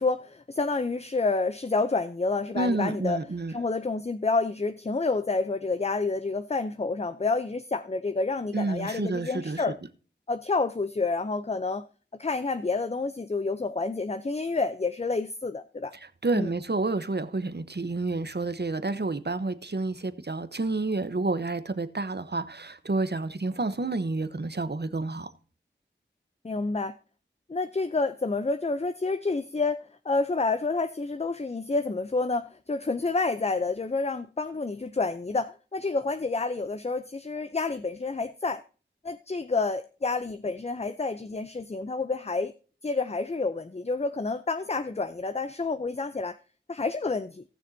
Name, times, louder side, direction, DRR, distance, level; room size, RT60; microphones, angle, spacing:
voice 1, 0.0-3.2 3.5-9.8 10.3-11.8 12.2-15.9 16.3-16.5 26.4-26.9 27.5-38.6 39.0-42.5 42.8-46.4 46.7-47.4, left 3 dB, 35° left, 0.5 m, -29 dB
voice 2, 2.5-3.5 8.5-9.6 15.9-25.3, right 3 dB, 60° right, 0.9 m, -29 dB
18.0 x 6.6 x 2.7 m
wide cardioid pair, 45°, 19 cm